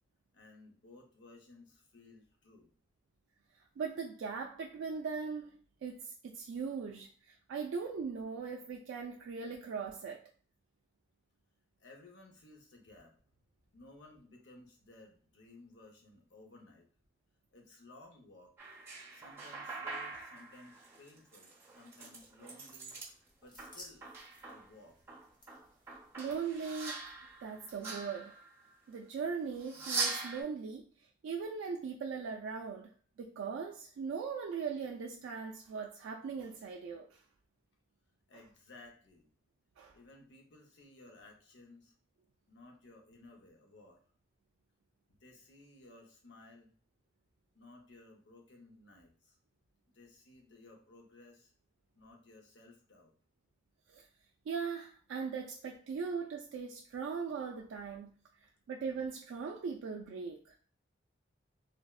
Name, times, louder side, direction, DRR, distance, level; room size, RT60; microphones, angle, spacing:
voice 1, 0.3-2.7 11.8-13.2 13.7-16.9 17.5-18.5 19.1-23.0 23.4-24.1 24.4-25.0 38.3-39.3 39.9-41.9 42.5-44.0 45.2-46.7 47.5-49.4 49.9-51.5 51.9-53.1, left 2 dB, 65° left, 0.6 m, -57 dB
voice 2, 3.8-5.5 5.8-10.2 26.2-27.1 27.4-28.3 28.9-30.8 31.2-32.9 33.2-37.2 39.8-40.0 53.9-54.0 54.5-58.1 58.4-60.5, right 5 dB, 80° right, 0.3 m, -39 dB
sound 1, 18.6-23.1 23.4-24.7 25.1-28.7 29.6-30.4, right 3 dB, 15° right, 0.8 m, -42 dB
sound 2, 22.9-28.1, left 1 dB, 25° left, 0.7 m, -59 dB
3.2 x 2.0 x 2.3 m
head